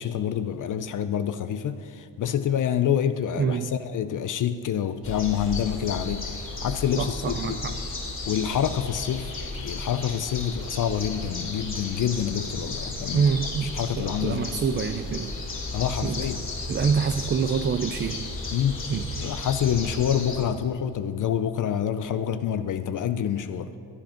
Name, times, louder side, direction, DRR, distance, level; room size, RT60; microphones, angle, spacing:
voice 1, 0.0-7.6 8.3-9.3 9.6-13.2 13.6-14.6 15.7-16.4 18.5-18.9 19.2-23.7, left 9 dB, 50° left, 0.6 m, -27 dB
voice 2, 3.4-3.7 7.0-7.8 13.1-15.4 16.0-16.3 16.7-18.5 18.9-19.2, right 6 dB, 30° right, 0.4 m, -26 dB
sound 1, 5.0-20.4, left 3 dB, 30° left, 2.5 m, -34 dB
13.0 x 8.7 x 5.8 m
cardioid pair, 95°, 40 cm